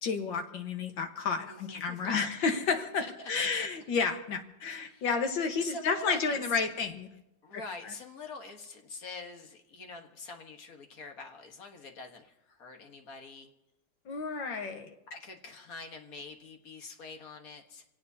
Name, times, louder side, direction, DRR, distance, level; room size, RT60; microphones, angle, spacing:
voice 1, 0.0-7.1 7.5-7.6 14.1-15.0, left 5 dB, 75° left, 5 dB, 2.0 m, -31 dB
voice 2, 1.5-2.3 3.0-3.5 4.6-5.2 5.6-6.7 7.4-13.5 15.1-17.8, left 3 dB, 50° left, 3 dB, 1.8 m, -45 dB
26.0 x 17.5 x 2.8 m, 0.89 s
omnidirectional pair, 2.1 m